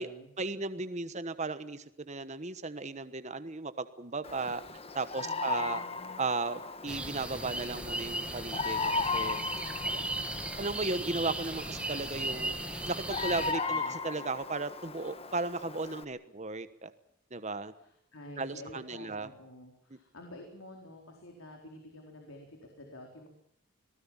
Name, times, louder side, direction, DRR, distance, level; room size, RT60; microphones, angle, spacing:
voice 1, 0.4-4.6 4.9-5.8 6.2-10.0 10.6-12.6 12.9-16.9 17.3-17.7 18.4-19.3, right 3 dB, 35° right, 12 dB, 1.2 m, -35 dB
Bird vocalization bird call bird song, 4.2-16.0, left 4 dB, 30° left, 1.4 m, -37 dB
voice 2, 5.1-6.2 13.4-14.0 17.8-23.3, left 1 dB, 85° left, 2 dB, 4.3 m, -50 dB
sound 1, 6.9-13.5, right 1 dB, 5° right, 2.1 m, -37 dB
25.5 x 19.0 x 7.3 m, 0.74 s
head